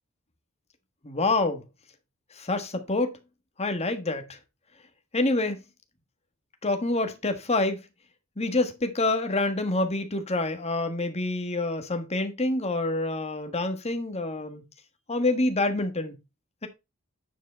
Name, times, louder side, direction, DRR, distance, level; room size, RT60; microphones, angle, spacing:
voice 1, 1.0-1.6 2.4-3.1 3.6-4.3 5.1-5.6 6.6-7.8 8.4-14.6 15.1-16.1, left 2 dB, 30° left, 1.5 m, -27 dB
9.2 x 5.1 x 4.4 m
head